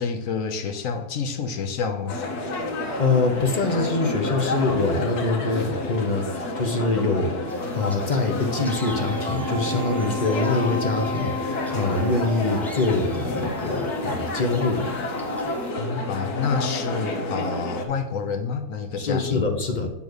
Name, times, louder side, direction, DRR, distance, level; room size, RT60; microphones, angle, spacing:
voice 1, 0.0-2.2 15.8-19.5, left 5 dB, 65° left, 6 dB, 1.0 m, -28 dB
sound 1, 2.1-17.8, left 2 dB, 80° left, 1.5 m, -30 dB
voice 2, 2.7-7.5 7.7-15.0 19.0-19.9, left 3 dB, 40° left, 4 dB, 0.7 m, -24 dB
sound 2, 7.5-15.7, equal, ahead, 0.7 m, -45 dB
Wind instrument woodwind instrument, 8.5-13.1, left 1 dB, 35° right, 1.6 m, -33 dB
8.6 x 3.5 x 6.3 m, 0.94 s
omnidirectional pair, 1.6 m